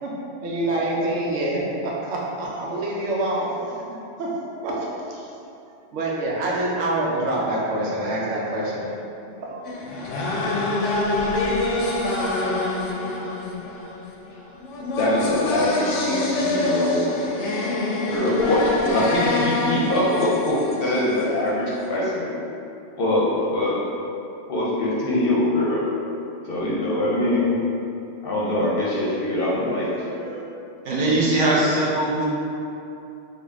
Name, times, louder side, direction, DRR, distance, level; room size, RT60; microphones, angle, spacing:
voice 1, 0.4-3.8 4.2-4.3 4.6-5.3 5.9-8.9 9.4-9.8 29.7-30.4, right 1 dB, 85° right, -4 dB, 1.0 m, -26 dB
sound 1, 9.7-21.5, left 2 dB, 85° left, 0.9 m, -25 dB
voice 2, 14.9-17.1 18.1-22.3 23.0-23.8 24.5-25.8 26.4-27.6 28.2-29.9, left 1 dB, 55° left, -6 dB, 0.7 m, -23 dB
voice 3, 30.8-32.3, right 2 dB, 50° right, -6 dB, 0.8 m, -20 dB
3.6 x 2.3 x 3.4 m, 2.7 s
omnidirectional pair, 1.2 m